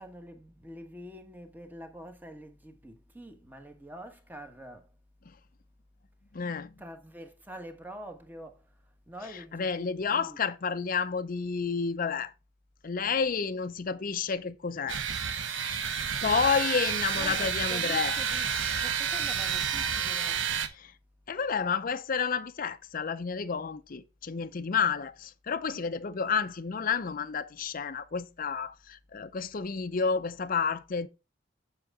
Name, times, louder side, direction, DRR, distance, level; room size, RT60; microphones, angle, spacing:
voice 1, 0.0-4.9 6.8-8.7 9.1-10.4 17.1-18.5 18.8-20.4, right 1 dB, 10° right, 1.3 m, -46 dB
voice 2, 6.3-6.7 9.3-12.3 12.8-15.0 15.5-18.2 20.8-20.9 21.3-31.1, left 5 dB, 45° left, 0.6 m, -30 dB
sound 1, 14.9-20.7, right 7 dB, 75° right, 0.9 m, -30 dB
7.6 x 7.5 x 3.6 m
head